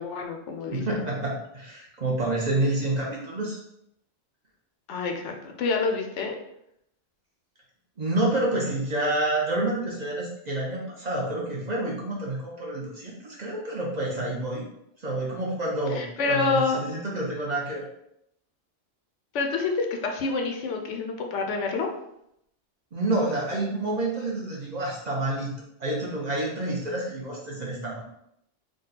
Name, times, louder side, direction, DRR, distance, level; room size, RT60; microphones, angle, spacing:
voice 1, 0.0-1.1 4.9-6.3 15.9-16.8 19.3-21.9, left 4 dB, 75° left, 3 dB, 0.9 m, -27 dB
voice 2, 0.7-3.6 8.0-14.6 15.0-17.9 22.9-25.5 25.8-28.0, right 2 dB, 40° right, -4 dB, 0.9 m, -28 dB
3.7 x 2.3 x 4.0 m, 0.77 s
omnidirectional pair, 1.2 m